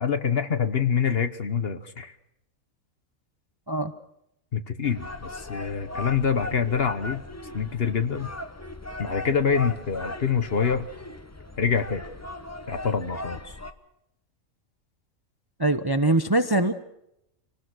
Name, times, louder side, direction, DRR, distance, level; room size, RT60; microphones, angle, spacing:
voice 1, 0.0-2.1 4.5-7.2 7.5-8.3 9.0-10.9 11.6-12.0 12.7-13.4, left 6 dB, 45° left, 10 dB, 1.2 m, -25 dB
sound 1, 4.8-13.7, left 2 dB, 15° left, 1.0 m, -38 dB
voice 2, 15.6-16.7, right 2 dB, 20° right, 9 dB, 0.7 m, -22 dB
25.5 x 19.0 x 6.3 m, 0.79 s
omnidirectional pair, 1.5 m